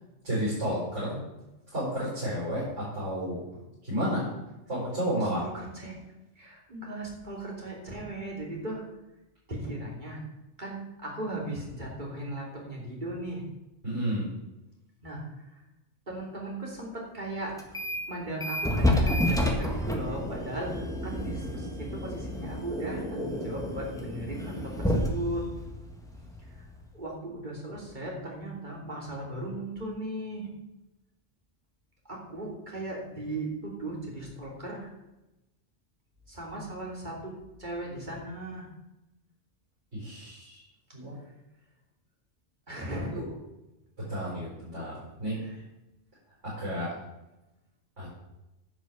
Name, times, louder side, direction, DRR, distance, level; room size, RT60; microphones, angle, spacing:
voice 1, 0.2-1.2 1.7-3.4 3.8-4.3 4.7-5.5 13.8-14.2 39.9-40.6 40.9-41.2 43.1-43.2 44.0-45.4 46.4-46.9 48.0-48.1, equal, 85° right, -8 dB, 5.3 m, -31 dB
voice 2, 5.4-6.0 6.3-8.8 9.5-10.2 10.6-13.4 15.0-15.5 16.1-17.5 18.1-20.7 21.0-25.4 26.6-26.7 26.9-30.5 32.1-34.9 36.3-37.3 37.6-38.7 42.7-43.2 45.4-45.6, right 1 dB, 40° right, -2 dB, 3.2 m, -37 dB
sound 1, 17.6-18.1 18.4-26.9, left 1 dB, 5° left, 1.5 m, -30 dB
10.5 x 6.3 x 7.1 m, 0.97 s
omnidirectional pair, 1.2 m